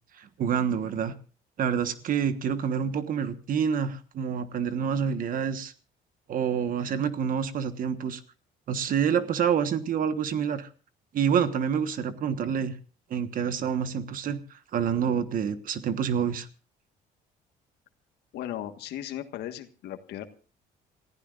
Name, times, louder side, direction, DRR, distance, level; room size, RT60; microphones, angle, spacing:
voice 1, 0.2-1.1 1.6-5.7 6.3-8.2 8.7-10.7 11.1-12.7 13.1-14.4 14.7-16.5, right 7 dB, 55° right, 11 dB, 1.3 m, -27 dB
voice 2, 18.3-20.2, left 12 dB, 75° left, 8 dB, 1.6 m, -36 dB
28.0 x 15.0 x 2.5 m, 0.37 s
cardioid pair, 110°, 17 cm